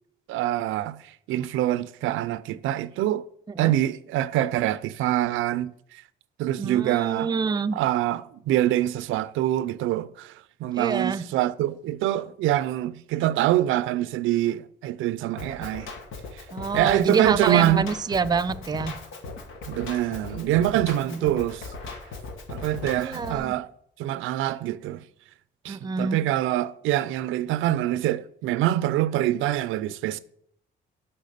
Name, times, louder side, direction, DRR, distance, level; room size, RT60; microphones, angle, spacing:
voice 1, 0.3-3.3 3.6-6.0 6.4-7.3 7.7-10.3 10.6-15.9 16.3-16.4 16.7-17.8 19.7-21.7 22.5-23.7 24.0-25.0 25.6-30.2, right 13 dB, 85° right, 0.4 m, -25 dB
voice 2, 6.6-7.8 10.7-11.2 16.5-19.0 21.0-21.2 23.0-23.5 25.7-26.2, right 5 dB, 20° right, 0.4 m, -27 dB
Drum kit, 15.4-23.4, left 4 dB, 85° left, 1.4 m, -38 dB
6.5 x 5.7 x 6.6 m
cardioid pair, 90°, 20 cm